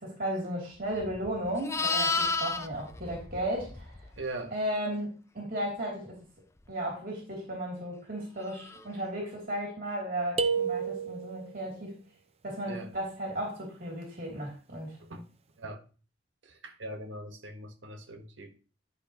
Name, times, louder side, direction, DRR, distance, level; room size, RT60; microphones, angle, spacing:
voice 1, 0.0-3.9 4.5-5.1 5.3-6.2 6.7-12.0 12.4-15.0, right 1 dB, 50° right, 3.1 m, -35 dB
Livestock farm animals working animals, 0.9-4.2 8.6-8.8, left 3 dB, 15° left, 0.5 m, -32 dB
voice 2, 4.2-4.6 12.6-12.9 15.0-15.3 15.6-15.8 16.4-18.5, right 2 dB, 85° right, 1.5 m, -41 dB
sound 1, 10.4-11.5, right 5 dB, 35° right, 0.6 m, -30 dB
11.5 x 6.0 x 3.0 m
head